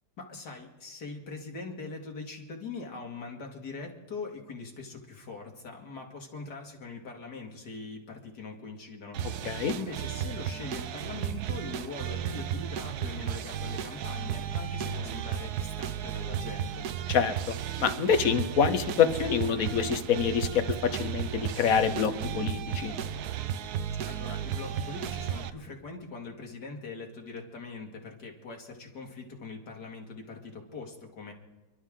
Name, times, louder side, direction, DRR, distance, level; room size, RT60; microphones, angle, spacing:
voice 1, 0.2-16.9 24.1-31.3, left 4 dB, 75° left, 1 dB, 2.7 m, -42 dB
sound 1, 9.1-25.5, right 9 dB, 70° right, 1.2 m, -34 dB
voice 2, 17.8-22.9, left 7 dB, 60° left, 10 dB, 1.2 m, -26 dB
29.5 x 12.0 x 3.7 m, 1.1 s
omnidirectional pair, 1.8 m